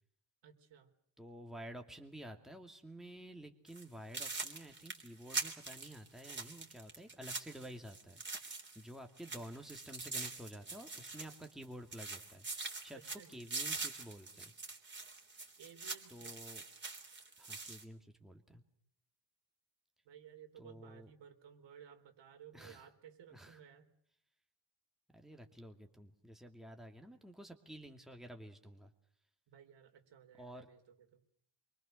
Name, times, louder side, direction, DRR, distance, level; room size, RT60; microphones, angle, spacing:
voice 1, 0.4-0.9 12.9-13.4 15.6-16.3 20.1-23.9 29.5-30.8 31.1-31.2, right 8 dB, 75° right, 5 dB, 4.1 m, -57 dB
voice 2, 1.2-14.5 16.1-16.6 17.4-18.6 20.6-21.1 22.5-22.8 23.3-23.6 25.1-28.9 30.4-30.7, equal, ahead, 4 dB, 2.6 m, -51 dB
sound 1, 3.7-3.8 4.1-8.9 9.2-11.7 11.9-17.8, right 3 dB, 25° right, 3.5 m, -44 dB
26.5 x 24.0 x 6.6 m, 0.67 s
cardioid pair, 120°, 44 cm